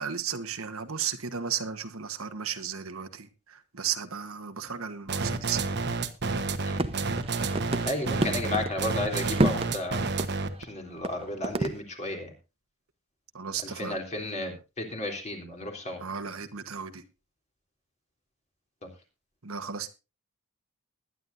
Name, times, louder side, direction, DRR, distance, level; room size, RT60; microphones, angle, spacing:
voice 1, 0.0-5.7 13.3-14.0 16.0-17.0 19.4-19.9, right 7 dB, 70° right, 1.3 m, -34 dB
sound 1, 5.1-10.6, right 3 dB, 50° right, 1.2 m, -29 dB
sound 2, 6.8-8.7 9.0-9.7 10.2-10.3 10.6-10.7 11.0-11.1 11.4-11.8, right 1 dB, 25° right, 0.9 m, -29 dB
voice 2, 7.9-10.0 10.6-12.3 13.6-16.0, left 1 dB, 30° left, 3.4 m, -33 dB
20.5 x 11.0 x 2.7 m
head